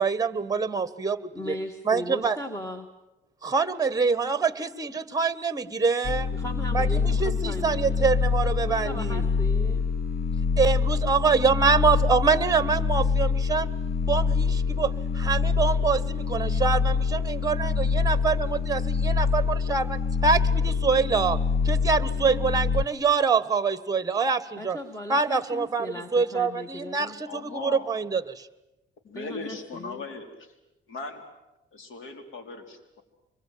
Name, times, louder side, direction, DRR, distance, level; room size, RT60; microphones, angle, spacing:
voice 1, 0.0-1.6 1.8-2.4 3.4-6.3 6.7-9.2 10.6-13.7 14.1-21.4 21.6-24.8 25.1-28.5, right 5 dB, 15° right, 15 dB, 1.4 m, -25 dB
voice 2, 1.3-2.9 6.3-8.0 8.6-9.8 24.6-27.2 29.1-30.1, equal, 15° left, 5 dB, 2.2 m, -37 dB
sound 1, 6.0-22.8, left 5 dB, 55° left, 1.0 m, -25 dB
voice 3, 27.2-27.9 29.0-30.5 30.9-31.2 31.7-33.0, left 4 dB, 80° left, 6 dB, 4.3 m, -38 dB
25.5 x 22.5 x 9.3 m, 0.99 s
cardioid pair, 90°, 20 cm